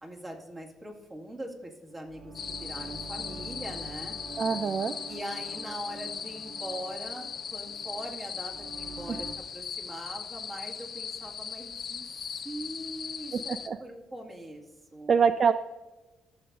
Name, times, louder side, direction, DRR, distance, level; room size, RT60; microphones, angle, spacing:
voice 1, 0.0-4.2 5.1-12.1 12.4-13.5 13.8-15.1, right 1 dB, 25° right, 0 dB, 2.1 m, -42 dB
sound 1, 1.9-9.3, right 3 dB, 65° right, 1.8 m, -46 dB
sound 2, 2.3-13.7, left 7 dB, 55° left, 0.7 m, -39 dB
voice 2, 4.4-4.9 13.3-13.8 15.1-15.5, right 6 dB, 50° right, 11 dB, 0.3 m, -25 dB
15.5 x 6.9 x 2.5 m, 1.2 s
cardioid pair, 90°, 0 cm